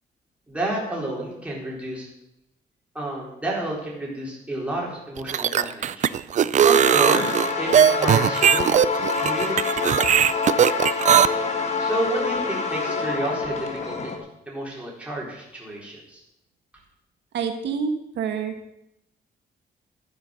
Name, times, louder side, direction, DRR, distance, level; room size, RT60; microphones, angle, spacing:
voice 1, 0.5-2.1 2.9-6.1 6.6-9.6 9.8-10.0 11.8-14.2 14.5-16.2, right 1 dB, 5° right, -4 dB, 4.0 m, -30 dB
sound 1, 5.2-11.3, right 9 dB, 40° right, 0.4 m, -18 dB
sound 2, 6.7-14.2, left 4 dB, 40° left, 1.7 m, -26 dB
voice 2, 17.3-18.6, right 6 dB, 75° right, 6 dB, 1.2 m, -27 dB
12.0 x 9.2 x 6.4 m, 0.83 s
cardioid pair, 160°, 19 cm